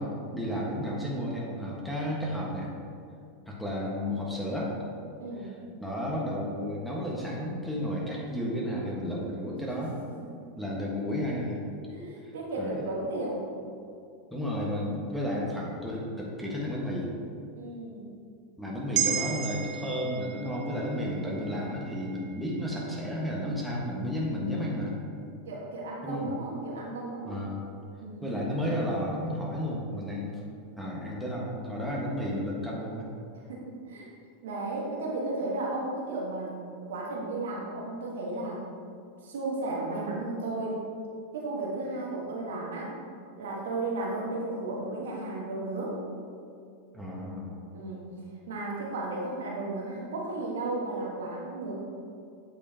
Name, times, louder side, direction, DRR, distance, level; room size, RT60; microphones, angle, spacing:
voice 1, 0.0-2.7 3.5-4.7 5.4-5.5 5.8-10.0 10.6-11.6 12.2-12.8 14.3-17.1 18.6-25.0 26.0-26.3 27.2-27.6 28.2-30.4 30.8-33.1 46.9-47.6, equal, ahead, -5 dB, 1.4 m, -32 dB
voice 2, 5.2-5.6 11.9-13.6 17.5-18.1 25.4-27.4 28.0-28.4 33.5-34.1 34.4-36.6 36.9-38.6 39.2-40.8 41.3-42.9 43.3-46.0 47.7-48.1 48.5-51.8, right 2 dB, 75° right, -3 dB, 1.4 m, -34 dB
sound 1, 18.9-23.4 23.8-24.0, right 10 dB, 60° right, 0.5 m, -35 dB
8.3 x 5.6 x 2.9 m, 2.4 s
hypercardioid pair, 95°, 0 cm